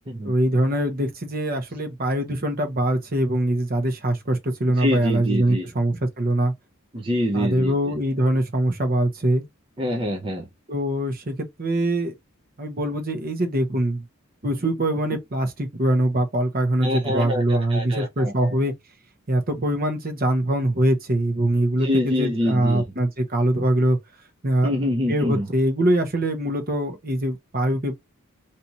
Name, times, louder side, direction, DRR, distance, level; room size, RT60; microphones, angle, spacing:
voice 1, 0.2-6.5 7.3-9.4 10.7-12.1 12.6-14.0 14.4-18.7 19.3-24.0 24.4-24.7 25.1-27.9, right 1 dB, 45° right, 1.0 m, -23 dB
voice 2, 4.8-5.7 6.9-7.7 9.8-10.5 16.8-18.5 21.8-22.8 24.6-25.5, left 1 dB, 25° right, 0.6 m, -25 dB
3.3 x 2.8 x 2.7 m
head